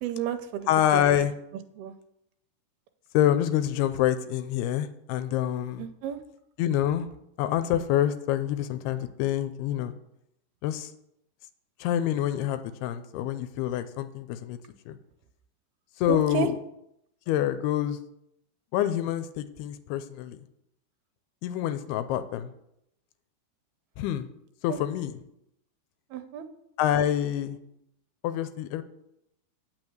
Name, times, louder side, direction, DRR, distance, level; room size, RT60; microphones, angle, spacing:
voice 1, 0.0-1.2 1.8-2.0 5.8-6.2 16.1-16.5 24.7-24.8 26.1-26.5, right 8 dB, 80° right, 8 dB, 2.4 m, -32 dB
voice 2, 0.7-1.3 3.1-5.9 6.6-7.1 7.4-9.9 10.6-10.9 11.8-14.6 14.9-15.0 16.0-16.6 17.3-18.0 18.7-20.4 21.4-22.5 24.0-24.3 24.6-25.1 26.8-27.6 28.2-28.8, left 11 dB, 90° left, 11 dB, 2.6 m, -26 dB
9.0 x 6.1 x 7.9 m, 0.80 s
omnidirectional pair, 4.6 m